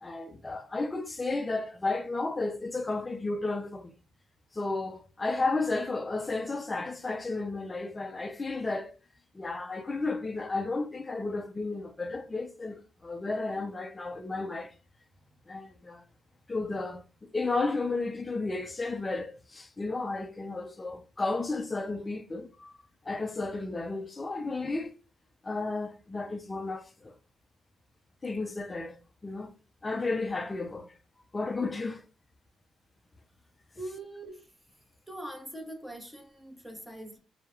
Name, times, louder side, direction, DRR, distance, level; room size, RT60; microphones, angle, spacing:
voice 1, 0.0-3.9 4.5-9.0 9.3-14.7 15.5-16.0 16.5-17.0 17.3-22.7 23.1-24.9 25.4-27.1 28.2-29.0 29.2-29.5 29.8-30.9 31.3-32.0, left 3 dB, 25° left, 0.4 m, -33 dB
voice 2, 33.8-34.5 35.1-37.2, right 1 dB, 5° right, 0.7 m, -42 dB
2.2 x 2.0 x 2.9 m
cardioid pair, 90°, 0 cm